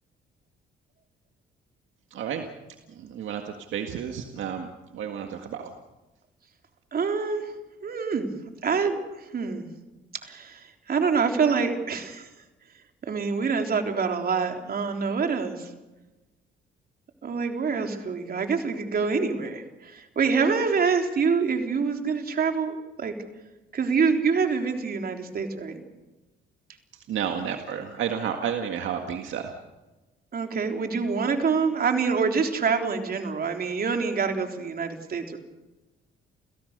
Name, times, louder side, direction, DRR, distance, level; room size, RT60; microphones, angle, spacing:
voice 1, 2.1-2.5 2.9-5.7 26.9-29.6, right 8 dB, 75° right, 4 dB, 1.9 m, -31 dB
voice 2, 6.9-7.5 7.8-8.3 8.6-9.0 9.3-9.7 10.2-12.3 13.1-15.7 17.2-23.2 23.7-25.8 30.3-35.4, right 5 dB, 50° right, 4 dB, 3.7 m, -26 dB
29.5 x 17.0 x 6.7 m, 1.1 s
cardioid pair, 90°, 20 cm